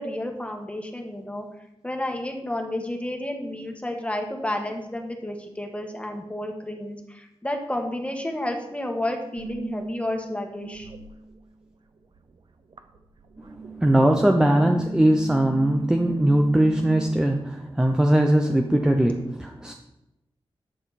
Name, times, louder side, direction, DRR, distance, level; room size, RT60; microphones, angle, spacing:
voice 1, 0.0-1.4 1.8-10.9, left 1 dB, 10° left, 3 dB, 1.5 m, -31 dB
sound 1, 9.4-11.7 12.0-17.2, right 4 dB, 50° right, 0.7 m, -38 dB
voice 2, 13.5-19.7, right 1 dB, 5° right, 3 dB, 0.6 m, -20 dB
10.0 x 6.7 x 4.1 m, 0.93 s
wide cardioid pair, 120°, 10 cm